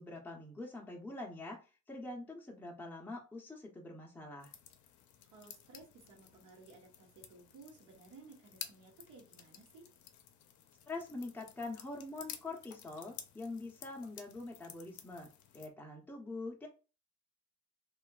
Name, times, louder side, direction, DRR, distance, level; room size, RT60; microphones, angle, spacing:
voice 1, 0.0-4.5 10.9-15.3 15.5-16.7, left 2 dB, 5° left, -2 dB, 0.6 m, -44 dB
sound 1, 4.4-15.7, left 9 dB, 75° left, 0.5 m, -53 dB
voice 2, 5.3-9.9, right 3 dB, 80° right, -2 dB, 1.0 m, -57 dB
2.6 x 2.4 x 2.3 m, 0.33 s
cardioid pair, 90°, 30 cm